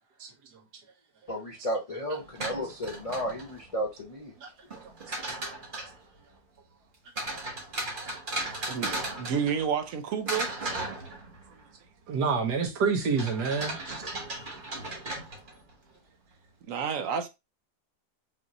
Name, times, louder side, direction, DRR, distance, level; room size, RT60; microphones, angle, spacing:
voice 1, 1.3-4.3, equal, 70° left, 0.3 m, -33 dB
sound 1, 2.2-3.7 4.7-6.0 7.2-9.9 10.3-11.6 13.2-15.7, right 2 dB, 35° right, 1.2 m, -36 dB
voice 2, 8.7-10.5 16.7-17.3, right 7 dB, 60° right, 1.0 m, -30 dB
voice 3, 12.1-14.0, right 5 dB, 80° right, 1.6 m, -28 dB
5.4 x 2.6 x 2.9 m
omnidirectional pair, 1.8 m